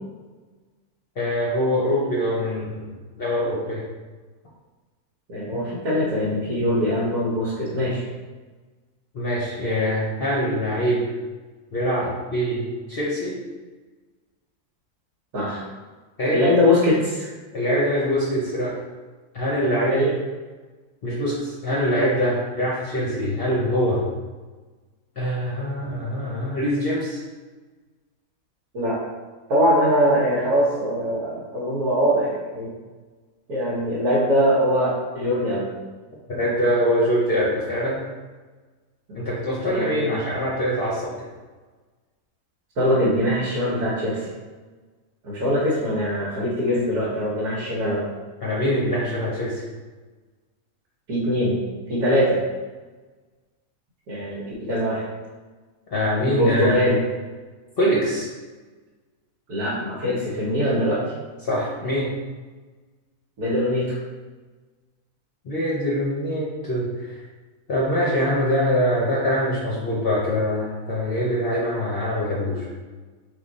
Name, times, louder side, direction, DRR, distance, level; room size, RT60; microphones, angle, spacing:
voice 1, 1.2-2.7 3.2-3.8 5.5-5.6 9.1-11.0 11.7-13.4 16.2-16.5 17.5-18.8 19.3-20.1 21.0-24.1 25.2-27.2 36.3-38.0 39.2-41.1 48.4-49.6 55.9-56.7 57.8-58.3 61.4-62.1 65.4-67.2 67.7-72.7, equal, 45° left, -6 dB, 0.8 m, -23 dB
voice 2, 5.3-8.0 15.3-15.6 16.3-17.3 19.9-20.1 28.7-29.0 29.5-32.7 33.5-35.7 39.1-39.2 39.6-40.2 42.8-44.3 45.2-48.0 51.1-51.6 51.9-52.4 54.1-55.0 56.3-57.0 59.5-61.0 63.4-64.0, equal, 75° right, -8 dB, 1.6 m, -22 dB
3.7 x 3.0 x 4.0 m, 1.3 s
omnidirectional pair, 1.6 m